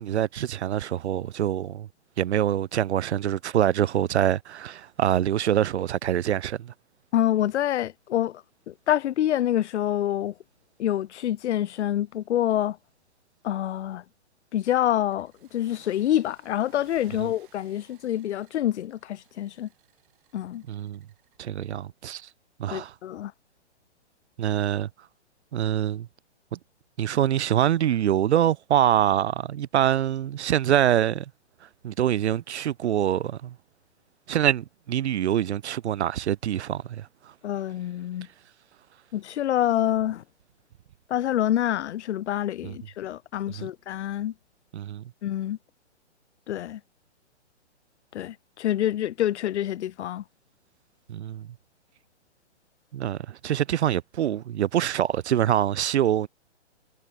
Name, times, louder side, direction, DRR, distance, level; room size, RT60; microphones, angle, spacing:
voice 1, 0.0-1.9 2.2-6.7 20.7-21.0 21.4-22.3 22.6-22.9 24.4-24.9 25.5-26.1 26.5-26.6 27.0-31.3 31.8-33.5 34.3-37.1 42.6-42.7 43.6-43.7 44.7-45.0 51.1-51.5 52.9-56.3, right 11 dB, 70° right, 0.7 m, -25 dB
voice 2, 7.1-10.3 10.8-12.8 13.4-14.0 14.5-19.7 20.3-20.6 22.7-23.3 37.4-38.3 39.1-40.2 41.1-44.3 45.2-45.6 46.5-46.8 48.1-50.2, left 12 dB, 75° left, 0.6 m, -27 dB
sound 1, 15.1-21.4, right 14 dB, 45° right, 5.6 m, -61 dB
hypercardioid pair, 145°, 35 cm